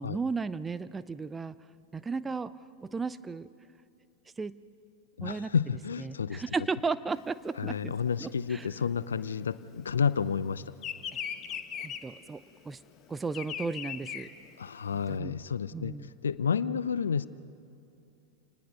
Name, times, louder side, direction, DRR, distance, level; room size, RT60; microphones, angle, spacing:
voice 1, 0.0-1.5 1.9-2.5 2.8-3.5 4.4-4.6 5.2-5.5 6.0-7.9 8.2-8.7 11.1-11.2 11.8-12.8 13.1-14.3 15.1-15.3 15.7-16.1 16.6-16.8, right 4 dB, 15° right, 15 dB, 0.5 m, -35 dB
voice 2, 5.2-6.4 7.6-10.6 14.6-15.9 16.2-17.3, left 6 dB, 70° left, 17 dB, 0.5 m, -30 dB
Bird vocalization bird call bird song, 7.2-10.1 10.4-15.1, left 8 dB, 30° left, 1.2 m, -39 dB
28.5 x 19.5 x 5.4 m, 2.8 s
figure-of-eight pair, 90°, 0 cm